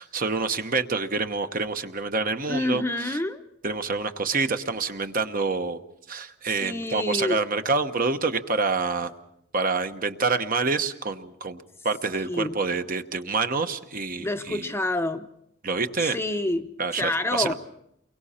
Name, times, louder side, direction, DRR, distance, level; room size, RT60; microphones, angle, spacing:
voice 1, 0.0-3.2 3.6-5.8 6.1-9.1 9.5-14.7 15.6-16.2 16.8-17.5, right 4 dB, 40° right, 8 dB, 1.0 m, -27 dB
voice 2, 2.5-3.4 6.6-7.4 12.3-12.6 14.2-15.3 16.0-16.7 16.9-17.5, left 1 dB, 10° left, 7 dB, 0.7 m, -27 dB
29.5 x 23.0 x 4.3 m, 0.76 s
head